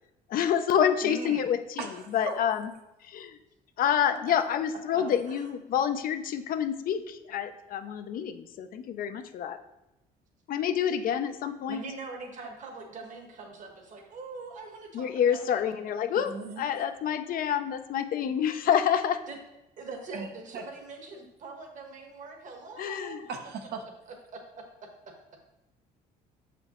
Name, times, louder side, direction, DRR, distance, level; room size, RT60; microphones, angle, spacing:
voice 1, 0.3-2.7 3.0-3.4 3.8-9.6 10.5-11.8 14.9-19.2 22.8-23.2, left 9 dB, 55° left, 9 dB, 0.5 m, -28 dB
voice 2, 1.0-1.5 5.3-5.5 11.7-15.6 19.3-19.4 19.8-23.2 24.3-24.7, right 3 dB, 50° right, 2 dB, 1.3 m, -42 dB
voice 3, 16.3-16.6 20.1-20.3 20.5-20.6 23.3-23.8, right 5 dB, 70° right, 4 dB, 0.9 m, -37 dB
6.6 x 5.0 x 3.0 m, 0.93 s
cardioid pair, 110°, 17 cm